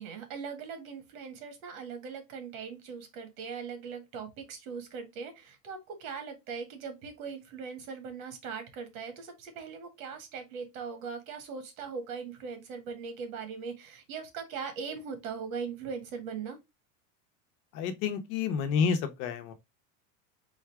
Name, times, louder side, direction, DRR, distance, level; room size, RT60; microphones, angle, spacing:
voice 1, 0.0-16.6, right 5 dB, 90° right, 1.7 m, -40 dB
voice 2, 17.7-19.5, left 6 dB, 60° left, 1.0 m, -29 dB
4.0 x 2.4 x 4.6 m
supercardioid pair, 155°, 40 cm